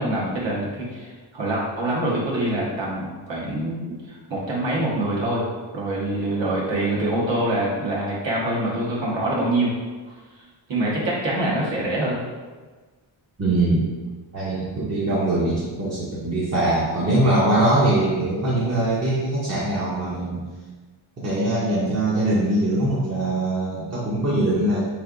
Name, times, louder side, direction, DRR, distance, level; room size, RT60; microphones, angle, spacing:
voice 1, 0.0-5.4 5.7-9.7 10.1-10.2 10.7-12.2, right 1 dB, 65° right, -5 dB, 1.2 m, -25 dB
voice 2, 13.4-13.9 14.3-20.4 21.2-24.9, right 1 dB, 30° right, -8 dB, 0.7 m, -22 dB
3.6 x 3.3 x 2.5 m, 1.3 s
cardioid pair, 85°, 48 cm